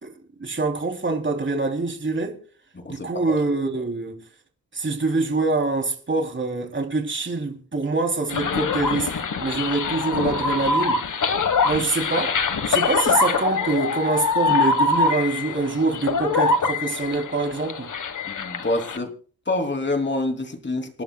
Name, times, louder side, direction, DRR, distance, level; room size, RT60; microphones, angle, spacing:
voice 1, 0.0-2.4 2.9-4.2 4.7-9.1 9.4-11.0 11.6-12.4 12.6-17.9, right 3 dB, 30° right, 3.3 m, -25 dB
voice 2, 2.8-3.4 18.3-19.1 19.5-21.0, left 2 dB, 30° left, 3.2 m, -27 dB
sound 1, 8.3-19.0, left 4 dB, 55° left, 1.5 m, -24 dB
28.5 x 11.5 x 2.3 m
wide cardioid pair, 95°, 36 cm